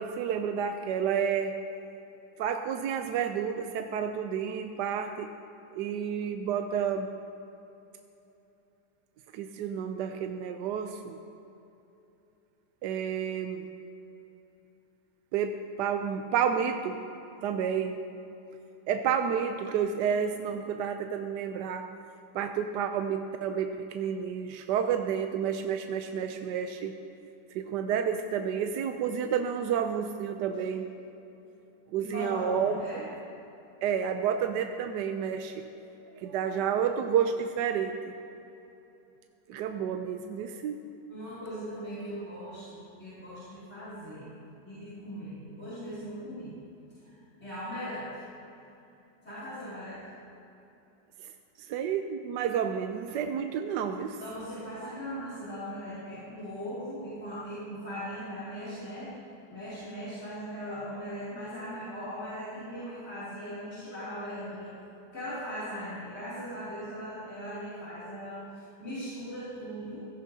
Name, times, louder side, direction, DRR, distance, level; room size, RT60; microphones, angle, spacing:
voice 1, 0.0-1.6 2.4-5.3 5.7-7.2 9.3-11.2 12.8-13.7 15.3-17.1 17.4-18.1 18.9-21.9 22.3-26.9 27.5-31.0 31.9-32.8 33.8-35.6 36.2-38.1 39.5-40.9 51.6-54.2, right 7 dB, 75° right, 6 dB, 1.2 m, -30 dB
voice 2, 32.0-33.1 41.1-44.3 44.6-46.5 47.0-47.1 47.4-48.1 49.2-50.0 54.2-59.1 59.5-64.7 65.1-70.0, equal, 35° left, -12 dB, 3.3 m, -39 dB
16.5 x 14.0 x 2.8 m, 2.9 s
omnidirectional pair, 1.9 m